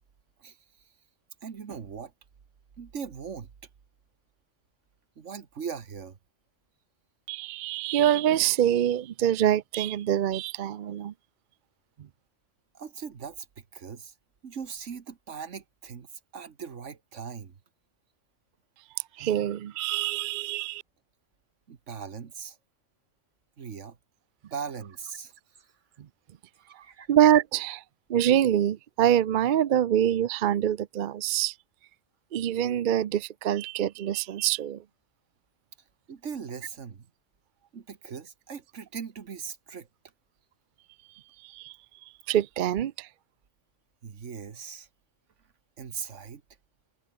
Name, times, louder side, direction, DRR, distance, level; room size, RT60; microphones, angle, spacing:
voice 1, 1.4-2.1 2.8-3.5 5.2-6.2 12.7-14.1 14.4-16.1 16.3-17.5 21.7-22.6 23.6-24.0 24.5-25.3 25.6-25.7 26.8-27.1 36.1-37.1 37.7-39.9 44.0-44.9 45.8-46.4, right 6 dB, 75° right, 1.7 m, -39 dB
voice 2, 7.3-11.1 19.2-20.8 26.7-26.8 27.1-27.8 28.1-31.5 32.3-34.8 41.4-41.8 42.3-43.1, right 11 dB, 55° right, 0.6 m, -25 dB
omnidirectional pair, 1.3 m